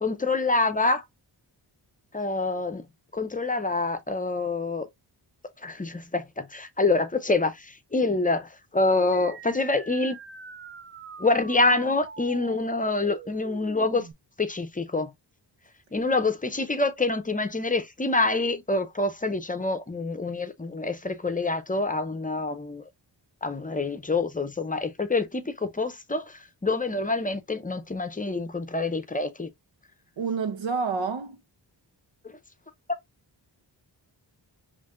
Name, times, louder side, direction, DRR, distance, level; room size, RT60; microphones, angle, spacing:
voice 1, 0.0-1.0 2.1-2.8 3.1-4.9 5.6-10.2 11.2-14.1 14.4-15.1 15.9-22.8 23.4-29.5 32.2-32.3, left 3 dB, 20° left, 0.6 m, -26 dB
sound 1, 9.1-14.1, right 4 dB, 30° right, 0.5 m, -44 dB
voice 2, 30.2-31.4, right 5 dB, 90° right, 0.9 m, -28 dB
5.5 x 2.6 x 2.4 m
wide cardioid pair, 105°, 44 cm